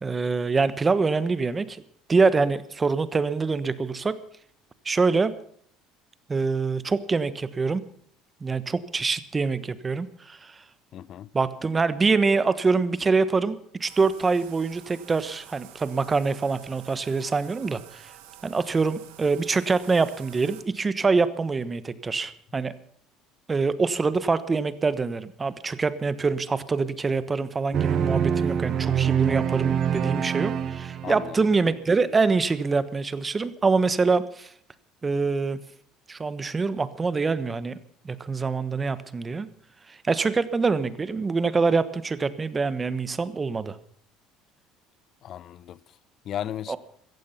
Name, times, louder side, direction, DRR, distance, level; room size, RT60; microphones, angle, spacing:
voice 1, 0.0-1.8 2.1-4.2 4.8-5.3 6.3-7.8 8.4-10.6 11.3-18.1 18.4-22.7 23.5-34.5 35.0-35.6 36.1-37.8 38.0-39.5 39.9-43.8 46.7-46.8, right 4 dB, 25° right, 1.2 m, -25 dB
voice 2, 10.9-11.3 31.0-31.5 45.2-45.8 46.2-46.8, left 11 dB, 50° left, 0.7 m, -35 dB
Bathtub (filling or washing), 13.8-20.6, right 12 dB, 85° right, 2.2 m, -49 dB
sound 1, 27.7-31.5, right 8 dB, 50° right, 0.9 m, -25 dB
16.0 x 14.5 x 5.8 m
supercardioid pair, 105°, 0 cm